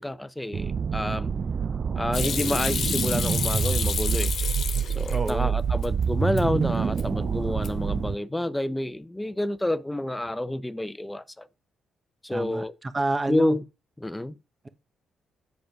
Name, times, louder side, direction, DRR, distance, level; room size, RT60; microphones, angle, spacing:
voice 1, 0.0-1.3 2.0-4.4 4.9-11.5 12.2-12.7 13.3-13.6 14.0-14.4, left 1 dB, 10° left, 0.8 m, -29 dB
sound 1, 0.5-8.1, right 6 dB, 50° right, 0.5 m, -27 dB
Hands / Sink (filling or washing), 2.1-5.3 5.7-6.4 6.8-7.2 7.5-8.0, left 7 dB, 65° left, 1.2 m, -30 dB
voice 2, 5.1-5.5 12.3-13.6, right 2 dB, 30° right, 1.3 m, -29 dB
9.4 x 5.0 x 6.0 m
supercardioid pair, 55°, 0 cm